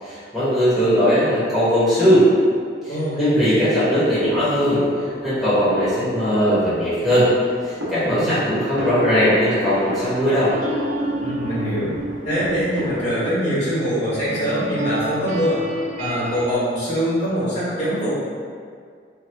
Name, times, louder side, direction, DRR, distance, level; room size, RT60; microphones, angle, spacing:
voice 1, 0.0-2.3 2.8-4.8 5.2-7.3 7.6-10.5, equal, ahead, -14 dB, 1.0 m, -19 dB
voice 2, 2.9-3.5 8.0-8.5 11.2-11.9 12.2-15.6 16.0-18.1, equal, 40° left, -11 dB, 1.2 m, -23 dB
sound 1, 3.9-13.1, equal, 75° right, 0.8 m, -34 dB
sound 2, 10.5-16.5, right 1 dB, 40° right, 0.3 m, -30 dB
2.8 x 2.2 x 3.3 m, 2.1 s
head